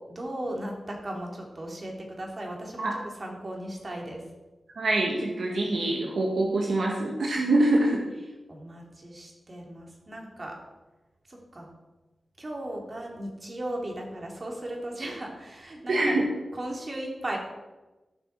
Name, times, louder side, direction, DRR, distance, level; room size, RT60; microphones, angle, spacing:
voice 1, 0.1-4.2 8.5-10.6 11.3-11.7 12.4-16.1 16.5-17.4, right 1 dB, 45° right, 0 dB, 2.8 m, -37 dB
voice 2, 4.8-8.0 15.9-16.2, right 2 dB, 80° right, -1 dB, 1.6 m, -25 dB
15.0 x 5.7 x 4.6 m, 1.1 s
cardioid pair, 55°, 0 cm